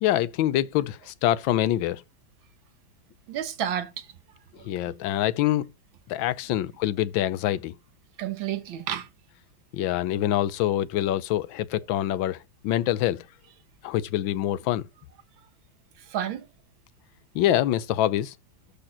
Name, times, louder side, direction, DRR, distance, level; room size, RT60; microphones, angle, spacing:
voice 1, 0.0-2.0 4.6-5.7 6.1-7.7 9.7-12.4 12.6-13.2 13.8-14.8 17.3-18.3, left 13 dB, 85° left, 1.4 m, -25 dB
voice 2, 3.3-4.1 4.6-4.7 6.5-6.6 8.2-9.1 16.0-16.5, right 10 dB, 85° right, 1.9 m, -31 dB
12.0 x 4.3 x 4.3 m
omnidirectional pair, 2.1 m